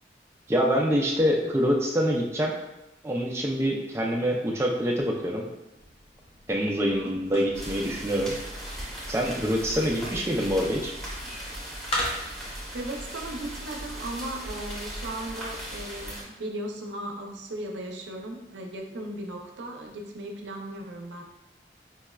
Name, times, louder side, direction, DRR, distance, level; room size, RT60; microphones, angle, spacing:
voice 1, 0.5-2.6 3.0-5.4 6.5-8.3 9.1-10.9, equal, 15° right, -1 dB, 0.4 m, -25 dB
sound 1, 5.7-12.6, left 1 dB, 35° left, 0.5 m, -39 dB
voice 2, 6.8-7.2 12.7-21.2, right 1 dB, 90° right, 2 dB, 0.5 m, -36 dB
sound 2, 7.5-16.2, equal, ahead, 0.8 m, -38 dB
4.7 x 2.1 x 2.2 m, 0.91 s
head